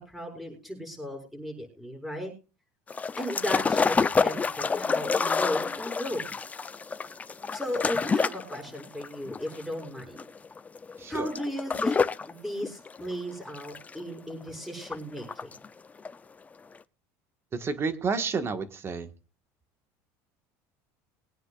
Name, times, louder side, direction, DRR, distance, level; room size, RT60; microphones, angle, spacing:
voice 1, 0.1-2.3 3.2-6.2 7.5-10.2 11.1-15.5, left 1 dB, 5° right, 0 dB, 6.8 m, -35 dB
sound 1, 2.9-12.3 12.6-14.4 14.8-15.7 16.0-16.1, left 4 dB, 20° left, 0.6 m, -28 dB
voice 2, 11.0-11.3 17.5-19.1, right 4 dB, 30° right, 8 dB, 1.6 m, -30 dB
22.5 x 9.4 x 2.5 m, 0.33 s
supercardioid pair, 120°, 8 cm